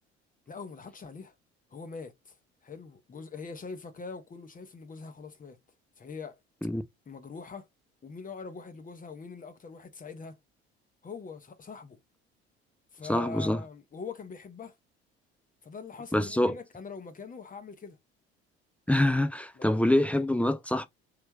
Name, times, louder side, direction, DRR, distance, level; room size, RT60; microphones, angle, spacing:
voice 1, 0.5-1.3 1.7-2.3 2.6-5.6 6.0-6.4 7.1-7.7 8.0-10.4 11.0-12.0 12.9-14.8 15.6-18.0 19.6-20.1, left 4 dB, 25° left, 0.9 m, -43 dB
voice 2, 13.1-13.6 16.1-16.6 18.9-20.9, left 1 dB, 5° left, 0.4 m, -25 dB
3.2 x 3.2 x 2.2 m
figure-of-eight pair, 55°, 32 cm